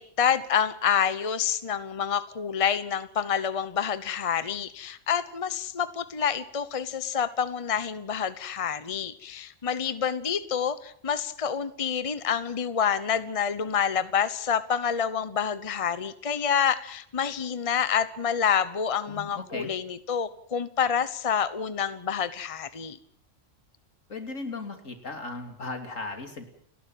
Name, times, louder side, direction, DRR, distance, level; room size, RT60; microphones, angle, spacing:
voice 1, 0.0-23.0, left 7 dB, 30° left, 14 dB, 1.0 m, -28 dB
voice 2, 19.1-19.7 24.1-26.5, left 3 dB, 85° left, 6 dB, 3.4 m, -37 dB
30.0 x 11.5 x 9.2 m, 0.64 s
omnidirectional pair, 1.3 m